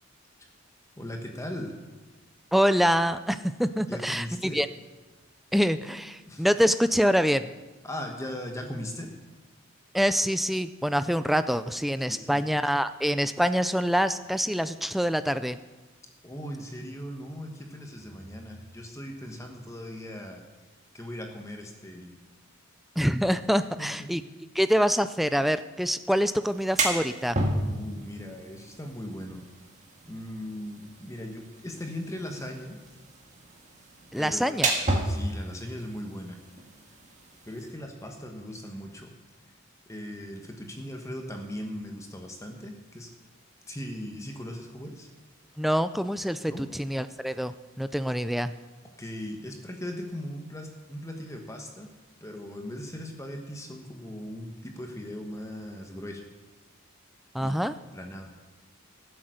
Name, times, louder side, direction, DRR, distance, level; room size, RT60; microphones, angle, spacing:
voice 1, 1.0-1.7 3.9-4.6 6.3-6.4 7.8-9.1 12.1-12.5 16.2-20.4 20.9-22.2 23.8-23.9 27.7-29.4 30.0-32.8 34.1-34.8 35.0-36.4 37.4-39.1 39.9-43.1 43.7-45.1 46.5-46.7 49.0-51.9 52.2-56.2 57.4-57.6 57.9-58.3, left 1 dB, 15° left, 3 dB, 1.2 m, -39 dB
voice 2, 2.5-4.7 5.5-7.5 9.9-15.6 23.0-24.2 24.5-27.4 34.1-34.7 45.6-48.5 57.3-57.7, equal, ahead, 12 dB, 0.3 m, -25 dB
sound 1, 26.4-37.7, right 2 dB, 35° right, 1.8 m, -33 dB
14.0 x 7.9 x 6.4 m, 1.2 s
head